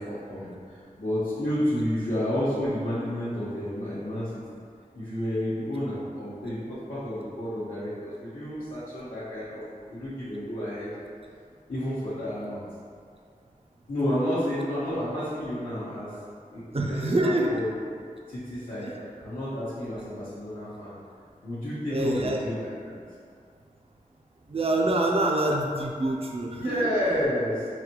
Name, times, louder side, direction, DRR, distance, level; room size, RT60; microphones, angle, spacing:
voice 1, 0.0-4.3 4.9-10.9 11.7-12.6 13.9-16.1 16.5-16.6 16.9-17.7 18.3-20.9 21.4-23.0 26.6-27.7, equal, 65° left, -13 dB, 0.9 m, -31 dB
voice 2, 16.7-17.5 18.8-19.0 21.9-22.4 24.5-26.9, right 1 dB, 45° right, 0 dB, 0.4 m, -26 dB
4.0 x 2.2 x 2.9 m, 2.3 s
wide cardioid pair, 60°, 15 cm